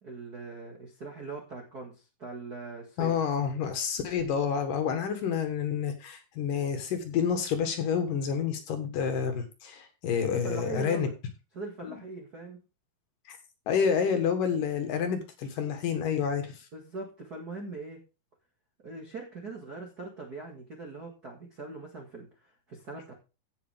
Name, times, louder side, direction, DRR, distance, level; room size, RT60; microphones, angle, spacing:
voice 1, 0.0-3.2 10.2-11.1 11.5-12.6 16.7-18.0 18.8-23.1, right 3 dB, 45° right, -1 dB, 1.2 m, -41 dB
voice 2, 3.0-11.1 13.7-16.5, left 7 dB, 65° left, 7 dB, 2.7 m, -29 dB
16.0 x 6.0 x 3.5 m, 0.30 s
omnidirectional pair, 4.7 m